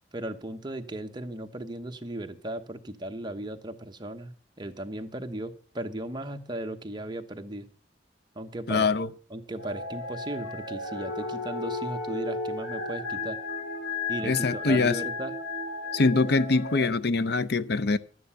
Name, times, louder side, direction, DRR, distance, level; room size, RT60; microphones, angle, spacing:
voice 1, 0.0-7.7 8.3-8.9 9.3-13.4 14.1-15.3, right 1 dB, 25° right, 1.0 m, -36 dB
voice 2, 8.7-9.1 14.2-15.0 15.9-18.0, left 3 dB, 65° left, 0.6 m, -24 dB
sound 1, 9.6-16.9, left 3 dB, 85° left, 1.4 m, -34 dB
12.0 x 9.5 x 5.7 m
head